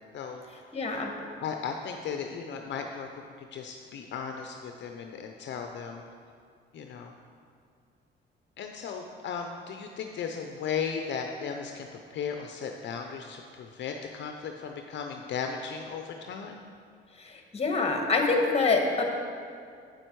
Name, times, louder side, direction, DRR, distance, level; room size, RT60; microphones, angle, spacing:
voice 1, 0.7-1.1 17.2-19.0, left 3 dB, 30° left, 3 dB, 1.4 m, -26 dB
voice 2, 1.4-3.1 3.4-6.0 6.7-7.1 8.6-11.9 12.1-16.6, left 6 dB, 65° left, 4 dB, 0.6 m, -36 dB
8.2 x 7.8 x 4.6 m, 2.3 s
cardioid pair, 90°, 20 cm